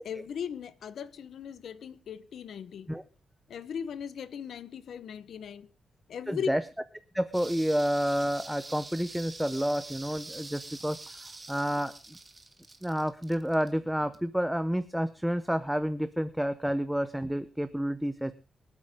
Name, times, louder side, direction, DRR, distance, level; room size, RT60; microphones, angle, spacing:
voice 1, 0.0-2.9 3.5-5.7 6.1-6.5, left 7 dB, 65° left, 0.9 m, -38 dB
voice 2, 6.3-6.6 7.1-12.2 12.8-18.3, equal, ahead, 0.6 m, -30 dB
sound 1, 7.3-14.4 14.7-14.8, right 2 dB, 20° right, 1.5 m, -46 dB
25.0 x 8.5 x 3.6 m
wide cardioid pair, 165°, 0 cm